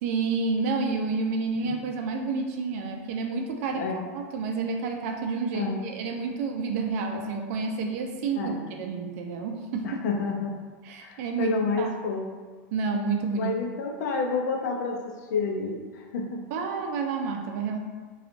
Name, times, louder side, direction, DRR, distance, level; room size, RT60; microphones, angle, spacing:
voice 1, 0.0-3.9 4.1-10.0 10.8-11.9 12.7-13.5 16.5-17.8, right 4 dB, 65° right, 3 dB, 0.4 m, -29 dB
voice 2, 3.7-4.1 5.5-5.8 8.4-8.6 9.8-10.6 11.0-12.3 13.4-16.4, left 4 dB, 85° left, 2 dB, 0.4 m, -29 dB
2.8 x 2.3 x 2.5 m, 1.4 s
supercardioid pair, 135°, 9 cm